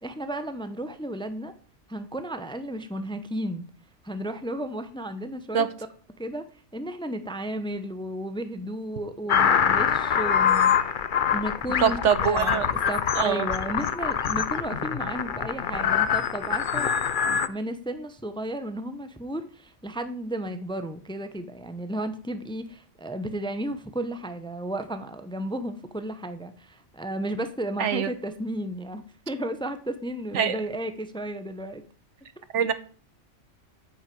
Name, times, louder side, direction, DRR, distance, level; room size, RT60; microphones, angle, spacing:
voice 1, 0.0-1.5 1.9-3.7 4.0-5.7 6.2-6.4 6.7-11.0 11.3-16.9 17.2-31.8, right 1 dB, 5° left, 0.7 m, -33 dB
sound 1, 9.3-17.5, left 7 dB, 50° left, 0.8 m, -24 dB
voice 2, 11.8-12.7 13.1-13.5 27.8-28.1 30.3-30.5 32.5-32.7, right 7 dB, 75° right, 1.2 m, -23 dB
9.0 x 6.2 x 7.7 m
omnidirectional pair, 1.3 m